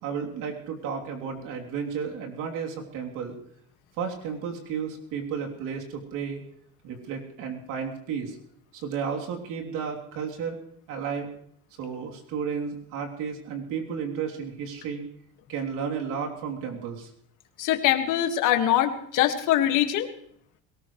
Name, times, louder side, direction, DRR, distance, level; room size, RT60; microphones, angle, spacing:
voice 1, 0.0-3.4 4.0-6.4 6.8-8.4 8.7-10.6 10.9-11.3 11.8-15.0 15.5-17.1, right 6 dB, 70° right, 1 dB, 3.3 m, -33 dB
voice 2, 17.6-20.1, left 12 dB, 70° left, 7 dB, 1.9 m, -23 dB
21.5 x 18.5 x 3.2 m, 0.65 s
cardioid pair, 140°, 32 cm